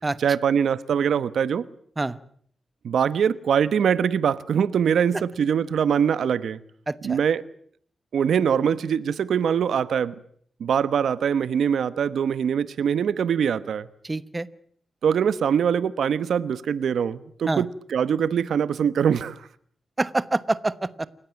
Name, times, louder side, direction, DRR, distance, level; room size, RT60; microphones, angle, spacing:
voice 1, 0.2-1.6 2.8-6.6 7.0-7.4 8.1-10.1 10.6-13.9 15.0-19.4, right 7 dB, 90° right, 1.1 m, -23 dB
voice 2, 6.9-7.2 14.0-14.5 17.5-17.7 20.0-21.1, right 2 dB, 20° right, 1.0 m, -26 dB
28.5 x 15.5 x 9.0 m
wide cardioid pair, 110°, 0 cm